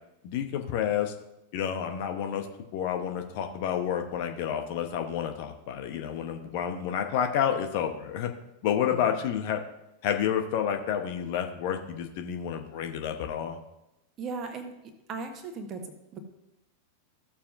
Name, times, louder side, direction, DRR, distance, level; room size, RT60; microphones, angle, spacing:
voice 1, 0.2-1.1 1.5-2.5 2.7-8.3 8.6-9.6 10.0-13.6, left 9 dB, 50° left, 5 dB, 1.0 m, -29 dB
voice 2, 14.2-14.7 15.1-16.2, right 4 dB, 30° right, 6 dB, 1.3 m, -37 dB
15.0 x 7.0 x 2.6 m, 0.88 s
figure-of-eight pair, 90°, 0 cm